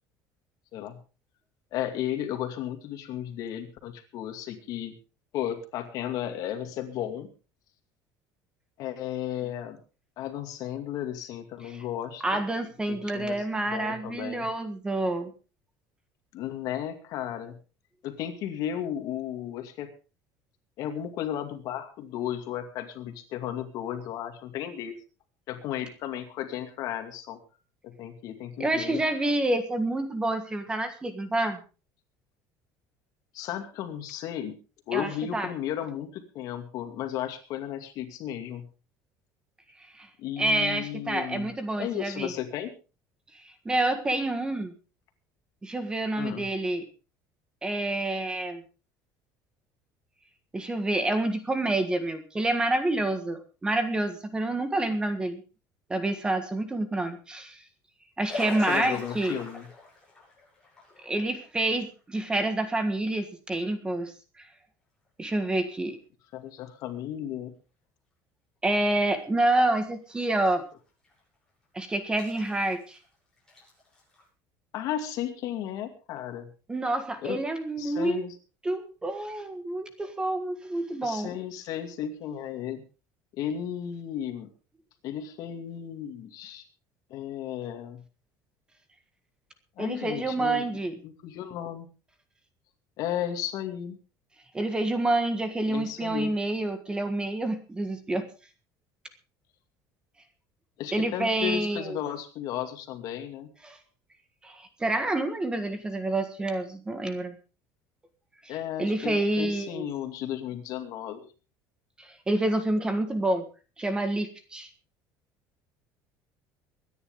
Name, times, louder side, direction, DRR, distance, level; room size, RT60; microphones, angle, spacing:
voice 1, 1.7-4.9 5.3-7.3 8.8-9.8 10.2-12.4 12.9-13.4 13.7-14.5 16.3-17.6 18.0-19.9 20.8-24.9 25.5-27.4 27.8-29.0 33.3-34.5 34.9-38.7 40.2-42.7 46.2-46.5 58.6-59.7 66.3-67.5 74.7-76.5 77.2-77.4 77.8-78.3 81.0-82.8 83.4-84.5 85.0-86.6 87.1-88.0 89.8-90.7 91.0-91.9 93.0-94.0 95.7-96.3 100.8-103.5 108.5-111.3, left 10 dB, 55° left, 6 dB, 2.4 m, -34 dB
voice 2, 12.2-15.3 28.6-31.6 34.9-35.5 40.0-40.1 40.4-42.3 43.3-44.7 45.6-46.9 47.6-48.6 50.5-55.4 55.9-57.6 58.2-59.4 61.0-64.4 65.2-66.0 68.6-70.6 71.7-73.0 76.7-78.2 78.6-81.3 89.8-90.9 94.5-98.2 100.9-102.0 103.6-103.8 104.4-107.4 108.4-108.5 108.8-109.9 112.0-113.4 113.8-114.7, right 2 dB, 10° right, 9 dB, 1.6 m, -28 dB
sound 1, 58.3-61.5 62.0-62.1 65.6-65.7 66.6-66.7 68.7-68.8 69.2-69.3 69.9-70.6 71.0-71.2 72.2-73.0 73.4-74.2, left 2 dB, 10° left, 7.9 m, -42 dB
24.0 x 10.0 x 3.7 m, 0.34 s
cardioid pair, 160°, 7 cm